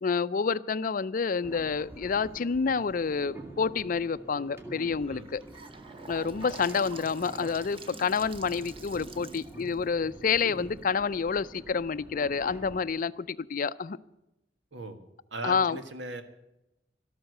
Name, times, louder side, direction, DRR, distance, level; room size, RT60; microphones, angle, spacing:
voice 1, 0.0-5.4 6.1-14.0 15.4-15.8, left 5 dB, 50° left, 16 dB, 0.4 m, -28 dB
sound 1, 1.4-12.8, right 1 dB, 15° right, 2.0 m, -47 dB
Gurgling / Sink (filling or washing) / Bathtub (filling or washing), 5.1-11.2, right 3 dB, 30° right, 0.9 m, -47 dB
voice 2, 14.7-15.1 15.3-16.2, right 2 dB, 90° right, 7 dB, 1.7 m, -38 dB
13.0 x 12.5 x 6.6 m, 0.89 s
head